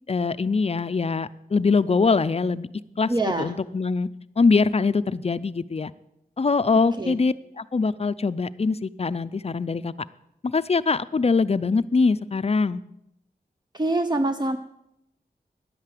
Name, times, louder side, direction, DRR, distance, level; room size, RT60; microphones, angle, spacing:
voice 1, 0.1-2.7 3.0-3.1 3.4-4.1 4.4-5.9 6.4-9.9 10.4-12.8, left 4 dB, 40° left, 16 dB, 0.5 m, -23 dB
voice 2, 3.1-3.5 7.0-7.1 13.7-14.6, right 2 dB, 25° right, 7 dB, 0.7 m, -24 dB
11.0 x 8.8 x 7.7 m, 0.84 s
wide cardioid pair, 65°, 16 cm